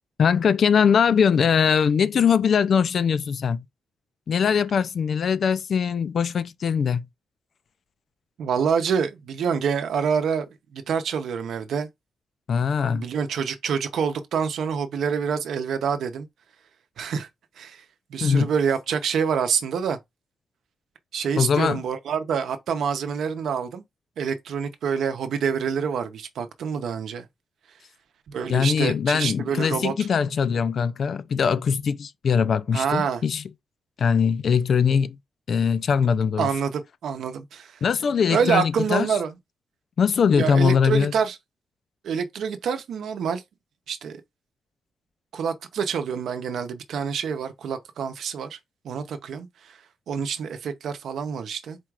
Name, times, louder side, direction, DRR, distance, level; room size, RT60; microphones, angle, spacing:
voice 1, 0.2-3.7 4.3-7.0 12.5-13.0 18.2-18.5 21.4-21.8 28.5-33.4 34.0-35.2 35.5-36.5 37.8-39.0 40.0-41.1, left 6 dB, 55° left, 0.4 m, -21 dB
voice 2, 8.4-10.5 10.7-11.9 12.9-16.3 17.0-17.3 17.6-17.8 18.1-20.0 21.1-23.8 24.2-27.3 28.3-29.9 32.7-33.2 36.4-37.8 38.3-39.4 40.3-41.4 42.0-43.4 43.9-44.2 45.3-48.6 48.8-51.8, right 6 dB, 80° right, 0.7 m, -26 dB
4.4 x 2.4 x 4.6 m
wide cardioid pair, 135°, 0 cm